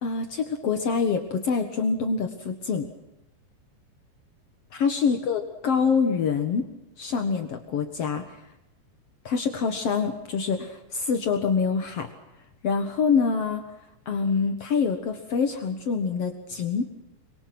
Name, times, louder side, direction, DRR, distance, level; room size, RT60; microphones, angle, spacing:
voice 1, 0.0-2.9 4.7-6.7 7.0-8.4 9.2-12.1 12.6-13.6 14.0-16.9, left 5 dB, 75° left, 6 dB, 1.4 m, -25 dB
26.5 x 23.0 x 6.1 m, 0.93 s
omnidirectional pair, 5.2 m